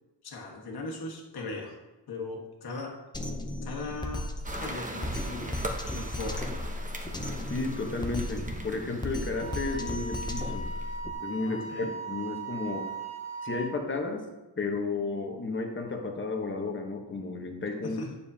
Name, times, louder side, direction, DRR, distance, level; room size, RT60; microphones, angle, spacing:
voice 1, 0.2-1.7 2.1-2.9 3.6-5.6 5.9-6.5 11.4-11.9 17.8-18.1, left 3 dB, 60° left, 0 dB, 1.5 m, -38 dB
Drum kit, 3.1-11.1, left 1 dB, 10° left, 0.6 m, -35 dB
sound 1, 4.4-11.0, right 1 dB, 20° right, 0.9 m, -41 dB
voice 2, 7.5-10.6 11.2-12.9 13.4-14.3 14.6-18.0, left 3 dB, 30° left, 3 dB, 1.0 m, -33 dB
Wind instrument woodwind instrument, 9.3-13.8, right 3 dB, 40° right, 1.4 m, -38 dB
9.3 x 7.0 x 2.8 m, 1.1 s
wide cardioid pair, 135°, 41 cm